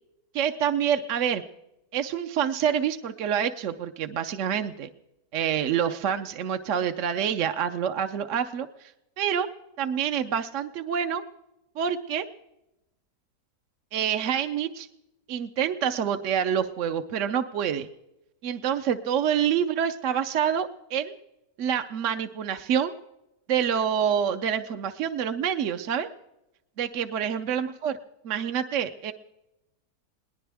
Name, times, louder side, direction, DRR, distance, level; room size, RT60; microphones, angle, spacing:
voice 1, 0.3-1.4 1.9-4.9 5.3-8.9 9.2-9.5 9.8-11.2 11.8-12.3 13.9-14.9 15.3-17.9 18.4-21.1 21.6-22.9 23.5-26.1 26.8-27.9 28.2-29.1, right 8 dB, 60° right, 7 dB, 1.0 m, -27 dB
21.0 x 18.5 x 3.5 m, 0.91 s
omnidirectional pair, 1.6 m